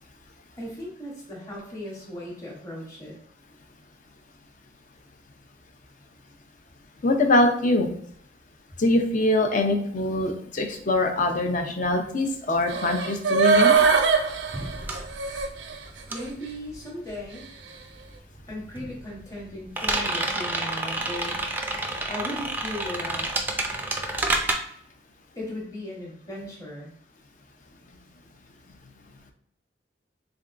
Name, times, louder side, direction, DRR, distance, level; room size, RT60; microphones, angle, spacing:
voice 1, 0.6-3.2 16.1-17.5 18.5-21.3 22.1-23.3 25.4-26.9, left 1 dB, 20° left, -3 dB, 1.0 m, -37 dB
voice 2, 7.0-7.9 8.8-13.7, left 2 dB, 45° left, 5 dB, 0.5 m, -23 dB
sound 1, 12.7-15.8 16.2-16.3, right 5 dB, 80° right, 0.5 m, -21 dB
sound 2, 13.7-17.6 17.8-24.5, right 2 dB, 10° right, 0.4 m, -30 dB
3.7 x 3.4 x 2.5 m, 0.67 s
head